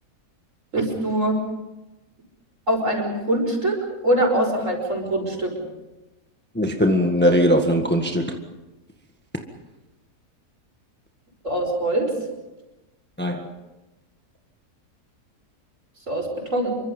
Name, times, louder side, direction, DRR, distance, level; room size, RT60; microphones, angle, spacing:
voice 1, 0.7-1.4 2.7-5.5 11.4-12.1 16.1-16.7, right 1 dB, 50° right, 2 dB, 6.1 m, -23 dB
voice 2, 6.5-8.3 13.2-13.5, equal, 5° left, 3 dB, 1.5 m, -20 dB
27.5 x 24.0 x 5.4 m, 1.0 s
omnidirectional pair, 1.7 m